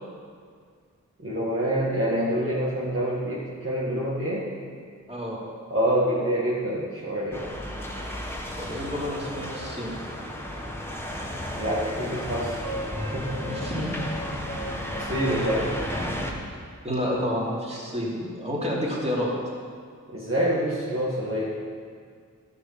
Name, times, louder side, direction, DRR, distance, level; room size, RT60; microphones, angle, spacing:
voice 1, 1.2-4.5 5.7-7.5 11.5-12.8 13.1-13.5 15.0-15.8 20.1-21.6, equal, 40° right, -8 dB, 1.8 m, -26 dB
voice 2, 5.1-5.4 8.6-9.9 13.5-13.9 16.8-19.3, equal, 20° right, -5 dB, 3.1 m, -29 dB
sound 1, 7.3-16.3, equal, 5° left, 1.4 m, -33 dB
13.0 x 6.6 x 5.8 m, 2.1 s
wide cardioid pair, 50°, 31 cm